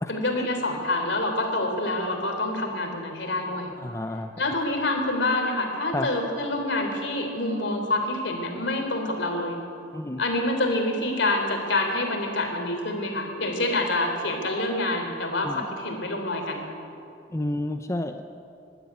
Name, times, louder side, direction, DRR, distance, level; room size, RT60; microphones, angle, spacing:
voice 1, 0.1-3.7 4.4-9.6 10.2-16.7, left 2 dB, 65° left, 3 dB, 3.5 m, -27 dB
voice 2, 3.8-4.4 5.9-6.1 9.9-10.2 15.4-15.6 17.3-18.2, left 1 dB, 15° left, 7 dB, 0.6 m, -30 dB
24.0 x 12.0 x 9.6 m, 2.7 s
head